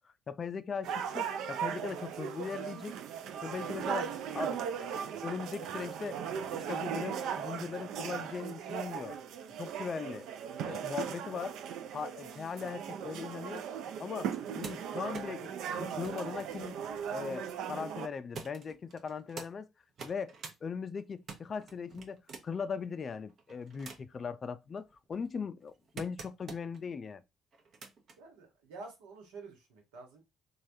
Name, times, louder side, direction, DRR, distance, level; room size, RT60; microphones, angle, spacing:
voice 1, 0.3-2.9 3.4-6.2 6.5-9.2 9.6-10.3 10.6-11.6 11.9-13.6 14.0-16.8 17.1-19.7 20.0-27.2, left 6 dB, 45° left, 0.3 m, -39 dB
sound 1, 0.8-18.1, right 8 dB, 75° right, 0.4 m, -38 dB
sound 2, 14.2-17.6 18.3-19.5 19.9-20.6 21.0-22.6 23.3-24.2 24.8-26.8 27.5-28.2 29.2-29.3, right 4 dB, 55° right, 0.7 m, -48 dB
voice 2, 28.2-30.2, right 3 dB, 90° right, 1.1 m, -49 dB
3.2 x 2.3 x 2.7 m
supercardioid pair, 65°, 0 cm